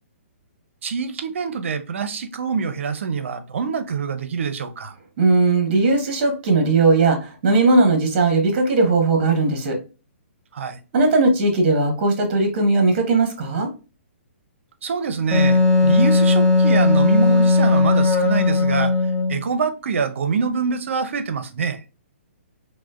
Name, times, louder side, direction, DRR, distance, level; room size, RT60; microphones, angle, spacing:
voice 1, 0.8-4.9 10.5-10.8 14.8-18.9 19.3-21.8, right 5 dB, 65° right, 0.6 m, -25 dB
voice 2, 5.2-9.8 10.9-13.7, right 3 dB, 40° right, 1.1 m, -18 dB
Wind instrument woodwind instrument, 15.3-19.4, left 3 dB, 5° left, 0.7 m, -17 dB
4.8 x 2.1 x 2.4 m
hypercardioid pair, 160°, 7 cm